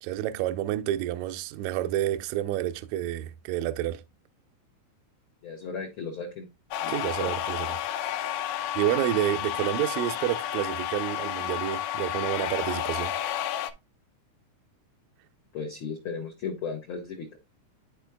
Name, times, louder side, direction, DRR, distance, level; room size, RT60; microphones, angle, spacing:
voice 1, 0.0-4.0 6.9-7.7 8.0-8.1 8.7-13.1, right 13 dB, 80° right, 1.7 m, -29 dB
voice 2, 5.4-6.5 6.8-7.3 15.5-17.4, left 5 dB, 65° left, 1.3 m, -36 dB
sound 1, 6.7-13.7, left 12 dB, 90° left, 2.2 m, -31 dB
11.5 x 4.4 x 2.2 m
omnidirectional pair, 3.7 m